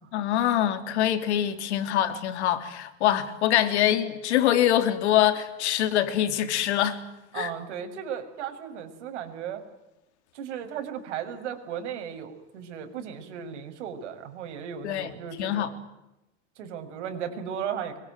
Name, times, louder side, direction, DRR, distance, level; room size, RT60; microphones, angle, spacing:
voice 1, 0.1-7.0 7.3-7.5 14.8-15.1 15.4-15.7, left 11 dB, 75° left, 3.4 m, -24 dB
voice 2, 7.3-9.6 10.3-15.8 16.6-18.0, right 8 dB, 85° right, 6.3 m, -36 dB
26.0 x 24.0 x 9.3 m
supercardioid pair, 175°, 34 cm